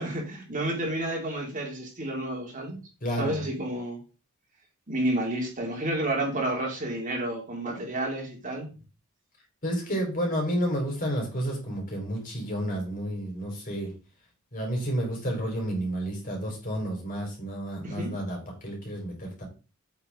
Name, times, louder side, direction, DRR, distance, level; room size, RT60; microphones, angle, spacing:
voice 1, 0.0-2.8 3.2-4.0 4.9-8.7 17.8-18.1, right 1 dB, 40° right, 0 dB, 2.7 m, -30 dB
voice 2, 3.0-3.4 9.6-13.9 14.5-19.5, equal, 40° left, 0 dB, 4.0 m, -31 dB
8.3 x 7.0 x 3.7 m, 0.33 s
head